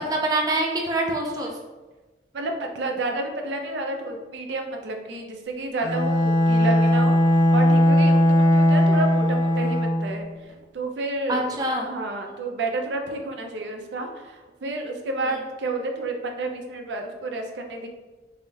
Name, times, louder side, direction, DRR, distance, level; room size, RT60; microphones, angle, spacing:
voice 1, 0.0-1.5 11.3-11.9, right 2 dB, 20° right, 0 dB, 0.4 m, -25 dB
voice 2, 2.3-7.2 7.5-10.3 10.7-17.9, right 2 dB, 80° right, 3 dB, 0.5 m, -30 dB
Bowed string instrument, 5.8-10.2, equal, 90° left, 0.7 m, -18 dB
3.5 x 2.6 x 3.4 m, 1.2 s
head